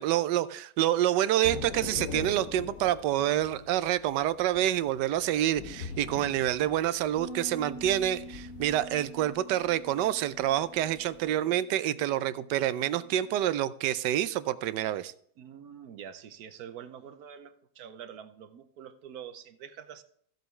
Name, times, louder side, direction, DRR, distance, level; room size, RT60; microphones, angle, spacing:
voice 1, 0.0-15.1, right 12 dB, 90° right, 1.2 m, -27 dB
Thunder / Rain, 1.4-11.4, left 6 dB, 60° left, 1.3 m, -43 dB
Bass guitar, 7.2-13.4, right 1 dB, 25° right, 0.8 m, -47 dB
voice 2, 15.4-20.0, right 8 dB, 70° right, 1.2 m, -46 dB
14.0 x 7.9 x 3.2 m
omnidirectional pair, 1.8 m